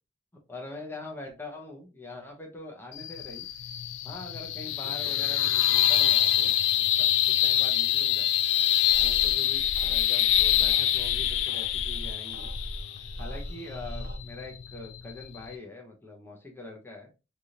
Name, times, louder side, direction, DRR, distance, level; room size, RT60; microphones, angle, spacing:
voice 1, 0.5-3.5 4.0-6.5 6.8-8.3 9.0-12.5 13.2-17.1, left 2 dB, 10° left, 0 dB, 0.8 m, -43 dB
sound 1, 2.9-15.6, left 12 dB, 70° left, 0.3 m, -25 dB
sound 2, 8.9-14.2, equal, 80° right, 1.0 m, -39 dB
3.4 x 2.5 x 2.8 m, 0.29 s
head